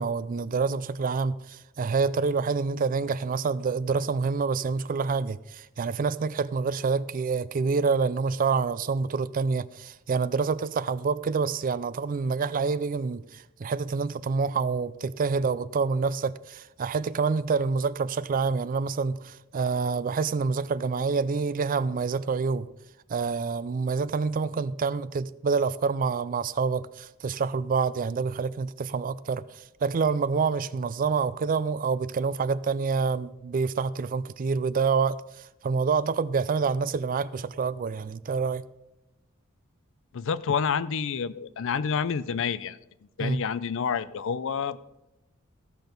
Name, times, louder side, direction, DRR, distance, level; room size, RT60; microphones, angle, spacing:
voice 1, 0.0-22.7 23.1-38.6 43.2-43.4, right 5 dB, 40° right, 0.4 m, -27 dB
voice 2, 40.1-42.8 43.2-44.8, left 6 dB, 65° left, 0.5 m, -28 dB
15.0 x 6.1 x 5.2 m
head